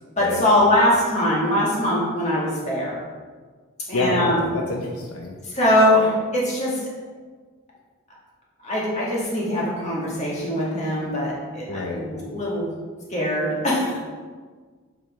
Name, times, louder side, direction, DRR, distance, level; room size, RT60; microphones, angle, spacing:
voice 1, 0.2-3.0 3.9-4.4 5.4-6.8 8.6-12.7 13.1-14.0, left 1 dB, 30° left, -5 dB, 2.0 m, -22 dB
voice 2, 3.9-5.4 11.7-12.0, left 2 dB, 80° left, 1 dB, 0.8 m, -27 dB
7.3 x 6.0 x 3.6 m, 1.5 s
head